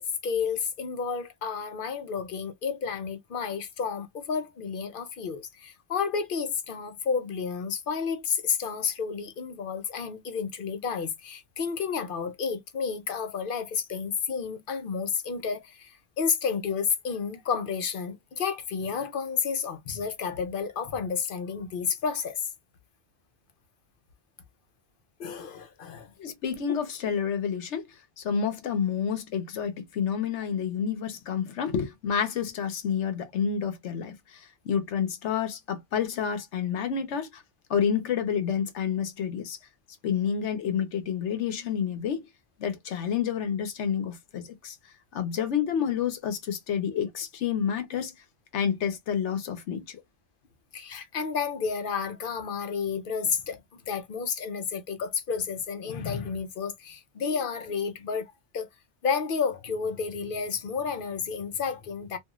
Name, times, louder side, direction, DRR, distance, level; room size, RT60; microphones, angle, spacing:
voice 1, 0.0-22.5 25.2-26.1 50.7-58.7 59.0-62.2, left 6 dB, 55° left, 0.7 m, -31 dB
voice 2, 26.2-27.8 28.2-37.4 37.7-39.6 40.0-42.3 42.6-44.8 45.1-48.1 48.5-50.0, left 7 dB, 85° left, 1.1 m, -29 dB
2.5 x 2.4 x 2.9 m
omnidirectional pair, 1.2 m